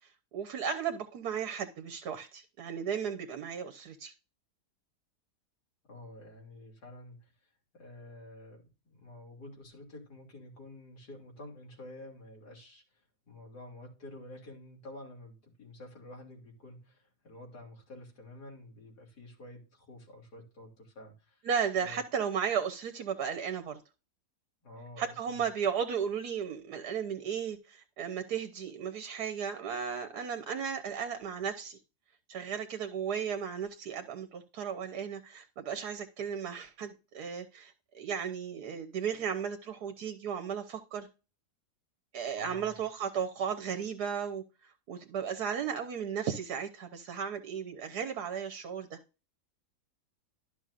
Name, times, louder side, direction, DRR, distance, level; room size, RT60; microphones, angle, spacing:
voice 1, 0.3-4.1 21.4-23.8 25.0-31.8 32.3-41.1 42.1-49.0, right 7 dB, 75° right, 1.4 m, -35 dB
voice 2, 5.9-21.5 21.8-22.0 24.6-25.4 42.3-42.8, left 1 dB, 80° left, 3.2 m, -50 dB
12.5 x 6.1 x 2.5 m
omnidirectional pair, 1.7 m